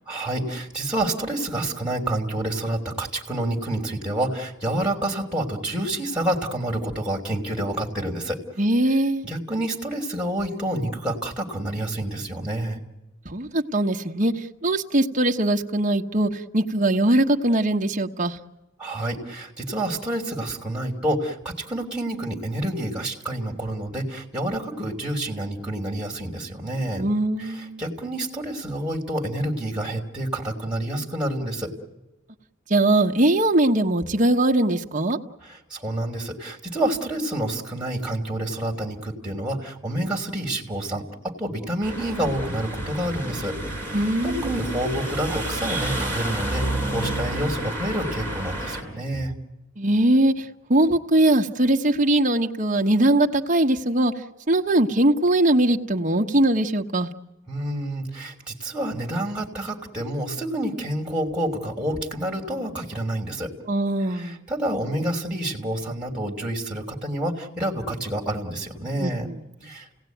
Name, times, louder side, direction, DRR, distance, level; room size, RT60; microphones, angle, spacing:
voice 1, 0.1-8.4 9.2-12.8 18.8-27.0 27.4-31.7 35.4-49.3 57.5-63.5 64.1-69.3 69.6-69.9, right 1 dB, 5° right, 0 dB, 3.0 m, -28 dB
voice 2, 8.6-9.2 13.3-14.3 14.6-18.4 27.0-27.8 32.7-35.2 43.9-44.4 49.8-50.3 50.7-54.1 54.5-57.1 63.7-64.4 69.0-69.4, right 1 dB, 40° right, 2 dB, 1.2 m, -21 dB
sound 1, 41.8-48.8, right 1 dB, 10° left, 5.1 m, -30 dB
29.5 x 18.0 x 9.3 m, 1.0 s
head